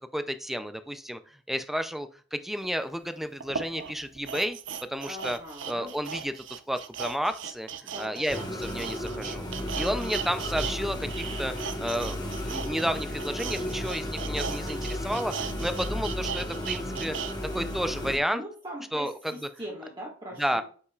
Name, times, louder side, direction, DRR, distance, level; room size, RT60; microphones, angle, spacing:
voice 1, 0.1-1.2 1.5-4.6 4.9-5.4 5.7-6.3 6.7-7.7 8.0-9.4 9.7-17.2 17.5-18.4 18.9-19.3 20.4-20.6, equal, ahead, 9 dB, 0.5 m, -31 dB
sound 1, 2.6-2.7 3.4-10.8 11.0-17.3 17.7-17.8, right 7 dB, 90° right, 0.7 m, -37 dB
voice 2, 5.0-5.9 7.8-8.5 18.3-20.6, equal, 25° right, -5 dB, 1.7 m, -41 dB
sound 2, 8.3-18.2, left 1 dB, 20° left, 1.4 m, -34 dB
8.0 x 5.6 x 2.4 m, 0.41 s
head